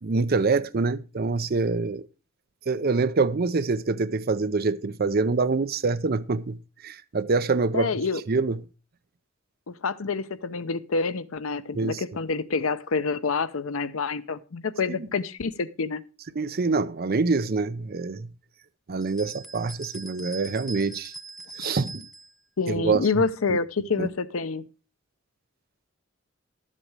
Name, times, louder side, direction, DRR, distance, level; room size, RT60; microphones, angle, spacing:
voice 1, 0.0-2.1 2.7-7.9 8.3-8.6 11.7-12.0 15.0-15.1 16.4-18.3 18.9-21.1 21.6-22.1 22.7-23.1 23.5-23.6 24.0-24.1, right 4 dB, 45° right, 0.6 m, -25 dB
voice 2, 7.7-8.2 9.7-16.0 22.6-24.6, left 4 dB, 80° left, 0.7 m, -27 dB
sound 1, 19.0-22.3, right 3 dB, ahead, 0.5 m, -41 dB
12.0 x 7.6 x 4.7 m
head